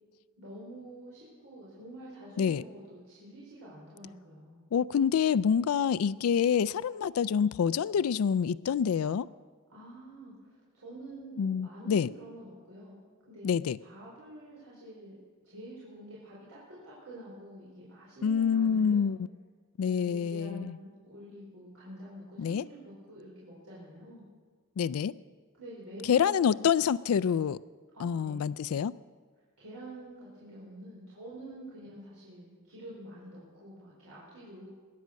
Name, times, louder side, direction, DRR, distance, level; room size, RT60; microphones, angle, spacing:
voice 1, 0.4-4.6 9.7-15.2 15.4-19.1 19.8-24.2 25.6-26.6 27.9-28.4 29.6-34.7, right 1 dB, 85° right, -8 dB, 4.4 m, -47 dB
voice 2, 4.7-9.3 11.4-12.1 13.4-13.8 18.2-19.2 19.8-20.8 22.4-22.6 24.8-25.1 26.1-27.6 28.0-28.9, left 7 dB, 80° left, 17 dB, 0.4 m, -27 dB
21.5 x 9.5 x 6.4 m, 1.5 s
head